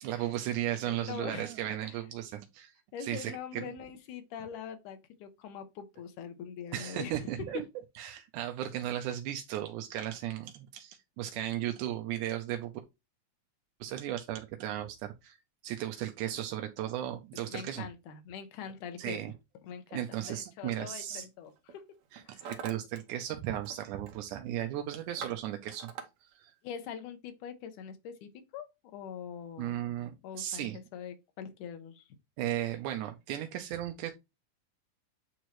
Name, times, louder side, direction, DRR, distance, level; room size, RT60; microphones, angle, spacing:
voice 1, 0.0-2.7 3.0-3.7 6.7-7.6 8.0-12.7 13.8-15.4 15.6-17.9 19.0-19.3 19.9-21.3 22.1-25.9 26.2-26.5 29.6-30.8 32.4-34.1, right 12 dB, 90° right, 2.2 m, -36 dB
voice 2, 0.8-1.5 1.8-2.0 2.9-7.2 7.5-7.6 17.4-19.2 19.6-21.9 22.2-22.6 26.6-29.8 30.2-32.0, left 7 dB, 85° left, 2.6 m, -43 dB
Hammer, 20.5-20.7 21.5-21.8 22.0-23.0 23.3-23.8 24.0-24.4 24.8-26.1, right 6 dB, 70° right, 2.3 m, -44 dB
9.1 x 3.1 x 4.4 m
omnidirectional pair, 3.5 m